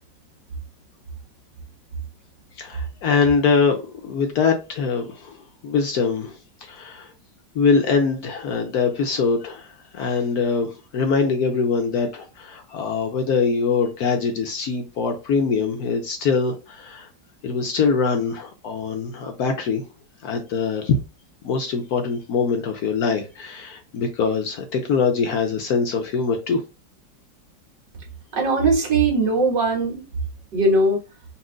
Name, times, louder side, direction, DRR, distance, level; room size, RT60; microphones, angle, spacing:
voice 1, 2.6-5.4 5.6-7.1 7.5-17.1 17.4-19.9 20.2-21.0 21.4-26.6, left 5 dB, 65° left, 1.0 m, -23 dB
voice 2, 28.3-30.1 30.5-31.0, right 2 dB, 70° right, 2.0 m, -19 dB
4.2 x 2.6 x 3.7 m
omnidirectional pair, 2.0 m